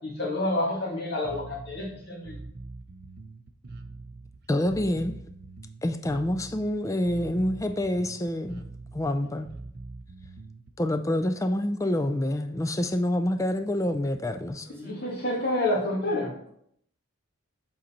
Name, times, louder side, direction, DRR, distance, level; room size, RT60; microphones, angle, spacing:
voice 1, 0.0-2.4 14.7-16.3, left 1 dB, 50° left, 1.9 m, -28 dB
Bass guitar, 1.2-10.7, right 3 dB, 50° right, 0.6 m, -43 dB
voice 2, 4.5-5.1 5.8-8.6 8.9-9.5 10.8-14.7, left 1 dB, 15° left, 0.4 m, -27 dB
voice 3, 14.6-15.5, right 1 dB, 10° right, 0.9 m, -54 dB
7.6 x 4.1 x 4.3 m
head